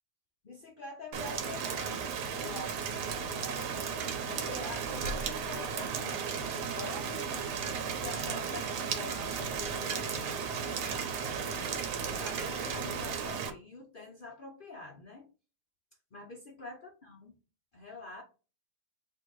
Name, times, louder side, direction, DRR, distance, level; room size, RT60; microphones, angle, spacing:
voice 1, 0.4-3.8 4.3-7.5 7.9-15.3 16.1-17.3 17.7-18.2, left 3 dB, 60° left, 0 dB, 0.5 m, -46 dB
Rain, 1.1-13.5, right 6 dB, 85° right, 1.4 m, -35 dB
3.8 x 2.6 x 4.5 m, 0.34 s
omnidirectional pair, 1.7 m